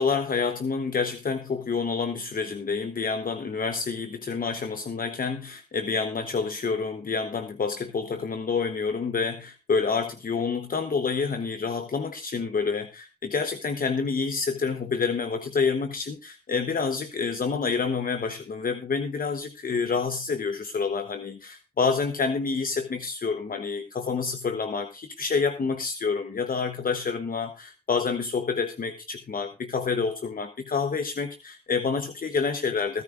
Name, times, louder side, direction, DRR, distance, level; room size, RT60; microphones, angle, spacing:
voice 1, 0.0-33.0, left 5 dB, 60° left, 8 dB, 1.0 m, -28 dB
25.0 x 9.6 x 2.5 m, 0.28 s
cardioid pair, 40°, 16 cm